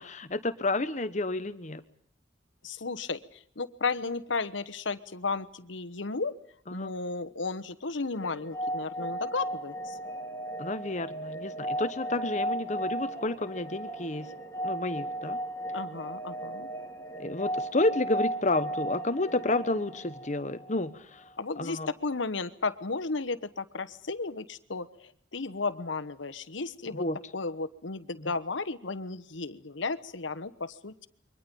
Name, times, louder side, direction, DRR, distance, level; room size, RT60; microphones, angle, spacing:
voice 1, 0.0-1.8 6.7-6.9 10.6-14.3 14.6-15.4 17.2-21.2 21.6-21.9 26.9-27.2, left 2 dB, 40° left, 12 dB, 1.1 m, -30 dB
voice 2, 2.6-6.3 6.7-10.0 15.7-16.7 21.4-27.0 27.3-31.1, left 3 dB, 80° left, 11 dB, 1.1 m, -34 dB
sound 1, 8.1-20.9, right 1 dB, 15° left, 2.3 m, -36 dB
28.5 x 23.5 x 5.4 m, 0.64 s
head